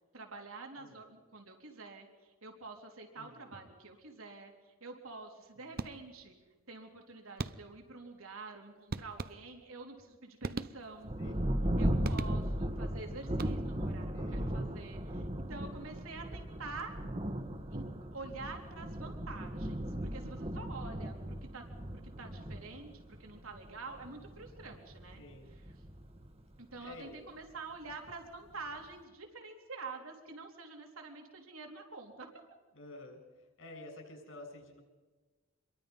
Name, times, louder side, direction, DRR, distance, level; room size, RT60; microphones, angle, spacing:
voice 1, 0.1-6.3 6.7-11.1 11.8-17.0 17.7-17.8 18.1-25.2 26.6-32.3, right 3 dB, 85° right, 2 dB, 3.6 m, -47 dB
voice 2, 3.2-3.6 5.6-5.8 11.2-11.3 11.9-12.3 14.1-14.6 19.9-20.3 25.2-25.6 26.8-27.2 32.7-34.8, left 1 dB, 70° left, 4 dB, 7.0 m, -51 dB
sound 1, 5.8-6.3 7.4-7.9 8.9-9.8 10.4-11.2 12.0-12.7 13.3-13.9, right 3 dB, 45° right, 0.7 m, -41 dB
Thunder, 11.0-27.1 27.9-28.0 28.5-29.0, equal, 30° right, 1.4 m, -37 dB
27.0 x 22.5 x 5.5 m, 1.2 s
head